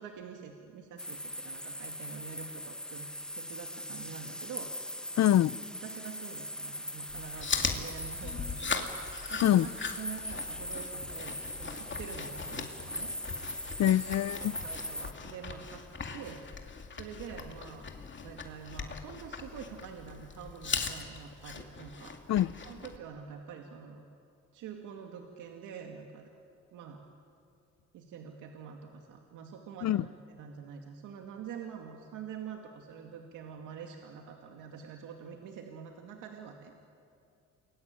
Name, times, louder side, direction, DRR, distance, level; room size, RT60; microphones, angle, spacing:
voice 1, 0.0-3.1 3.4-4.9 5.8-9.7 10.0-13.1 14.2-15.9 16.1-17.9 18.2-22.3 22.6-24.0 24.5-26.3 26.7-27.0 27.9-36.8, right 7 dB, 90° right, 2.3 m, -46 dB
sound 1, 1.0-15.1, left 1 dB, 5° left, 1.3 m, -40 dB
voice 2, 5.2-5.6 9.4-9.7 13.8-14.5 22.3-22.5 29.8-30.1, left 12 dB, 60° left, 0.6 m, -24 dB
Chewing mastication, 7.1-23.0, left 5 dB, 40° left, 2.7 m, -39 dB
29.0 x 22.5 x 9.0 m
cardioid pair, 90°, 30 cm